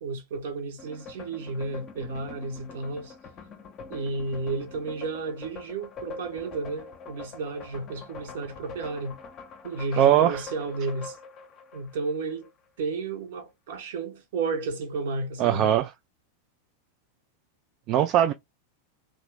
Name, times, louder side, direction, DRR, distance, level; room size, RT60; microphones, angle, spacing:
voice 1, 0.0-3.1 3.9-9.2 9.6-11.2 11.7-12.5 12.8-15.7, right 3 dB, 55° right, 1.0 m, -32 dB
sound 1, 0.8-12.5, left 4 dB, 30° left, 0.7 m, -44 dB
voice 2, 10.0-10.4 15.4-15.9 17.9-18.3, right 11 dB, 40° right, 0.3 m, -20 dB
2.9 x 2.5 x 3.1 m
figure-of-eight pair, 90°, 0 cm